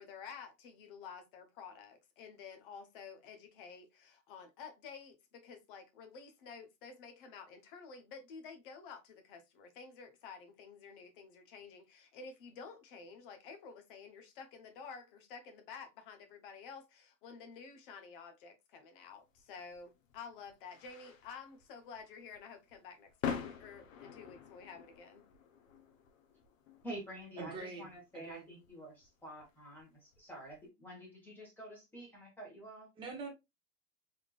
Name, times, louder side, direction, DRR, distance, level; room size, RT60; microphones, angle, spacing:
voice 1, 0.0-25.3, left 5 dB, 40° left, 0.9 m, -51 dB
sound 1, 19.3-30.6, left 7 dB, 75° left, 1.0 m, -47 dB
voice 2, 26.8-32.9, right 1 dB, 5° left, 1.4 m, -48 dB
voice 3, 27.4-28.5 33.0-33.3, right 4 dB, 10° right, 0.8 m, -44 dB
3.6 x 3.4 x 2.4 m
supercardioid pair, 165°, 40 cm